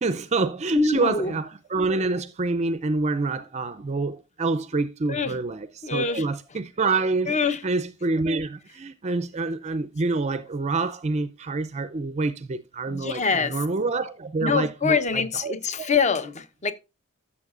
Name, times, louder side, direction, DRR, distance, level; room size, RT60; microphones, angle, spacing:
voice 1, 0.0-15.9, right 3 dB, 30° right, 0.4 m, -27 dB
voice 2, 0.8-1.3 5.1-5.4 5.8-6.2 7.3-7.6 12.9-13.5 14.4-16.7, left 5 dB, 30° left, 0.8 m, -24 dB
13.0 x 7.2 x 2.4 m
head